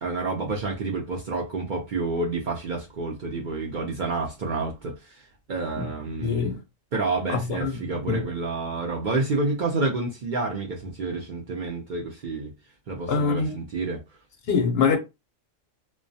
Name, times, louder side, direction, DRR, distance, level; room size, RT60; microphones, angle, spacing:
voice 1, 0.0-5.2 5.5-6.5 6.9-12.5 12.9-14.0, right 3 dB, 60° right, 0.5 m, -29 dB
voice 2, 6.2-6.6 7.3-7.8 8.1-8.3 13.1-13.5 14.5-15.0, left 5 dB, 65° left, 0.7 m, -24 dB
2.2 x 2.1 x 2.6 m
omnidirectional pair, 1.3 m